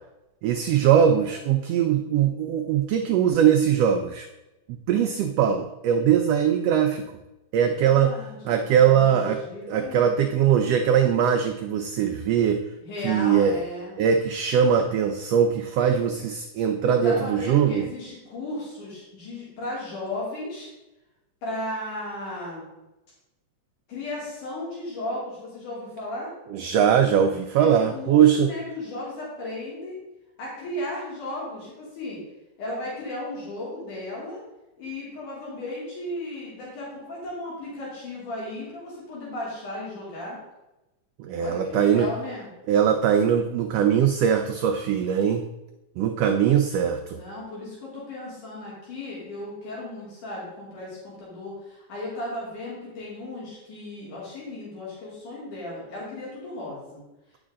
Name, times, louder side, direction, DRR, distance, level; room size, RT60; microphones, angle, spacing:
voice 1, 0.4-4.3 4.7-7.1 7.5-8.1 8.4-9.4 9.7-12.6 13.0-13.6 14.0-17.9 26.5-28.5 41.2-42.1 42.7-45.5 46.0-47.2, right 8 dB, 85° right, 5 dB, 1.4 m, -21 dB
voice 2, 7.6-10.3 12.8-14.0 16.8-20.7 21.4-22.7 23.9-26.3 27.6-30.0 30.4-32.2 32.6-34.4 34.8-40.4 41.4-42.5 47.1-57.0, left 1 dB, 80° left, -6 dB, 4.4 m, -35 dB
9.7 x 7.1 x 3.7 m, 0.98 s
omnidirectional pair, 3.5 m